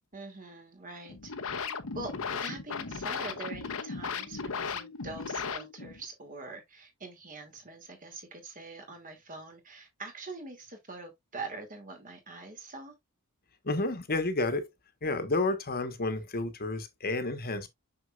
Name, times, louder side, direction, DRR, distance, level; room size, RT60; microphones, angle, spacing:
voice 1, 0.1-12.9, right 3 dB, 40° right, 2.4 m, -44 dB
sound 1, 1.0-6.0, left 5 dB, 65° left, 0.9 m, -36 dB
voice 2, 13.6-14.7 15.0-17.7, left 2 dB, 45° left, 1.2 m, -30 dB
6.5 x 6.2 x 2.4 m
head